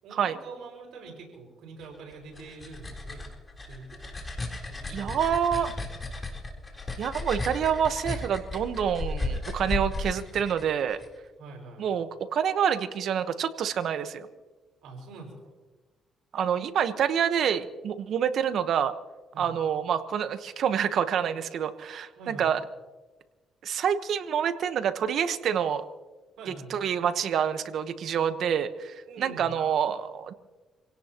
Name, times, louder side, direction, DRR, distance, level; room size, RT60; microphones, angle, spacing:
voice 1, 0.0-3.3 3.7-4.1 4.6-5.2 9.6-9.8 11.4-11.9 14.8-15.3 19.3-19.5 22.1-22.5 26.4-26.7 29.1-29.5, right 3 dB, 85° right, 0 dB, 5.9 m, -45 dB
sound 1, 2.1-11.1, left 2 dB, 25° left, 3.9 m, -35 dB
voice 2, 4.9-5.7 7.0-11.0 11.8-14.3 16.3-18.9 19.4-22.6 23.6-25.8 26.5-30.3, right 8 dB, 70° right, 10 dB, 1.2 m, -27 dB
27.5 x 17.5 x 3.0 m, 1.2 s
cardioid pair, 90°, 0 cm